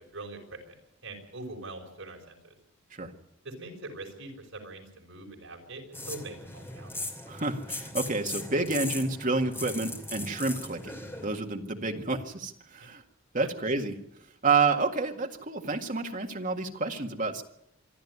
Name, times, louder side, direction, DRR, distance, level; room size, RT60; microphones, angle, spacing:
voice 1, 0.1-0.7 1.0-2.5 3.4-6.9 13.4-13.5, right 2 dB, 70° right, 2 dB, 5.6 m, -43 dB
sound 1, 5.9-11.4, left 2 dB, 10° left, 2.7 m, -39 dB
voice 2, 7.3-13.0 13.3-14.0 14.4-17.4, right 3 dB, 40° right, 3 dB, 1.9 m, -29 dB
26.0 x 11.5 x 9.6 m, 0.79 s
head